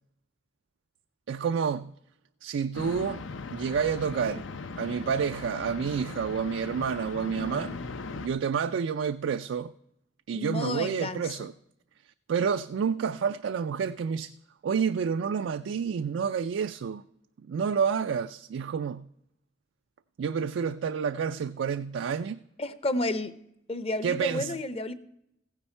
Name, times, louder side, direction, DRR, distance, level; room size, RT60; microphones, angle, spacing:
voice 1, 1.3-1.9 2.4-3.2 3.5-4.4 4.8-7.8 8.2-9.7 10.3-11.5 12.3-14.3 14.6-17.0 17.4-19.1 20.2-22.4 24.0-24.6, right 6 dB, 75° right, 0.3 m, -29 dB
sound 1, 2.7-8.3, left 4 dB, 80° left, 0.7 m, -39 dB
voice 2, 10.3-11.2 22.6-23.3 23.7-24.9, left 2 dB, 30° left, 0.7 m, -31 dB
15.5 x 9.7 x 4.4 m
head